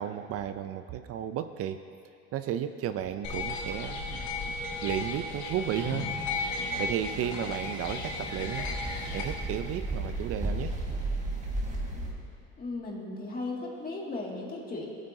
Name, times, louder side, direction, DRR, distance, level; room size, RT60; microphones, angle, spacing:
voice 1, 0.0-1.8 2.3-4.6 4.8-6.1 6.4-8.7 9.1-10.7, right 10 dB, 55° right, 10 dB, 0.4 m, -33 dB
sound 1, 3.2-9.2, left 3 dB, 80° left, 1.6 m, -34 dB
sound 2, 6.6-12.1, right 2 dB, 25° right, 1.6 m, -35 dB
voice 2, 12.6-14.9, left 2 dB, 30° left, -2 dB, 2.1 m, -36 dB
18.0 x 8.7 x 2.7 m, 2.7 s
cardioid pair, 125°, 29 cm